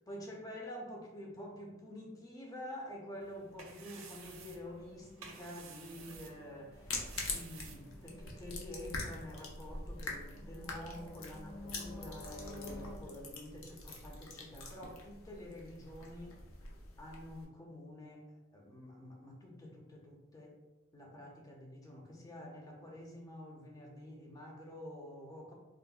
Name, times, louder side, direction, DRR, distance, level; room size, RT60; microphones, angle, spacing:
voice 1, 0.1-16.4 17.0-20.6 20.9-25.5, left 1 dB, 15° left, -1 dB, 0.4 m, -48 dB
sound 1, 3.2-8.3, right 5 dB, 80° right, 0.5 m, -54 dB
sound 2, 4.5-13.0, left 1 dB, 50° left, 0.8 m, -52 dB
sound 3, 6.7-17.4, left 3 dB, 85° left, 0.5 m, -45 dB
3.6 x 2.1 x 2.2 m, 1.0 s
head